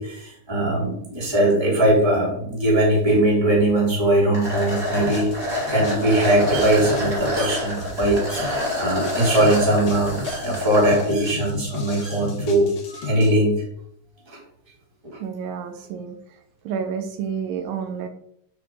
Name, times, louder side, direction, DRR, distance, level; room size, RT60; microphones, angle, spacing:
voice 1, 0.0-5.3 5.7-13.6 14.3-14.4 15.0-15.2, right 1 dB, 5° right, -3 dB, 2.8 m, -20 dB
sound 1, 4.3-11.0, left 1 dB, 25° right, 2.4 m, -27 dB
sound 2, 4.4-13.3, left 4 dB, 75° left, 1.3 m, -36 dB
voice 2, 15.2-16.4 16.6-18.1, right 7 dB, 85° right, 6 dB, 3.3 m, -30 dB
9.1 x 5.7 x 4.9 m, 0.71 s
omnidirectional pair, 5.3 m